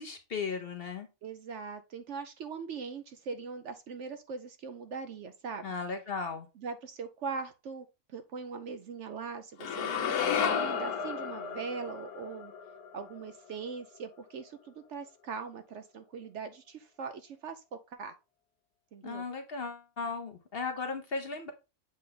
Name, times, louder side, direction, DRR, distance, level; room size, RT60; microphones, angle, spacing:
voice 1, 0.0-1.1 5.6-6.5 19.0-21.5, left 4 dB, 50° left, 0.8 m, -36 dB
voice 2, 1.2-5.7 6.6-12.5 12.9-17.6 17.9-18.1 18.9-19.2, right 5 dB, 65° right, 0.8 m, -41 dB
sound 1, 9.6-13.8, left 7 dB, 85° left, 1.3 m, -33 dB
7.6 x 3.3 x 3.9 m
omnidirectional pair, 1.6 m